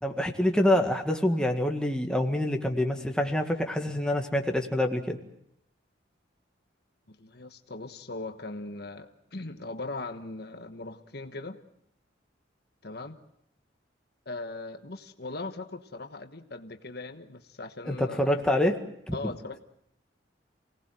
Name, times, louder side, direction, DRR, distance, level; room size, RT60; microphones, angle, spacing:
voice 1, 0.0-5.2 17.9-18.8 19.1-19.2, left 1 dB, 5° left, 3 dB, 1.9 m, -26 dB
voice 2, 7.1-11.6 12.8-13.2 14.2-18.3 19.1-19.6, left 2 dB, 55° left, 7 dB, 1.3 m, -39 dB
29.0 x 18.5 x 7.7 m, 0.77 s
head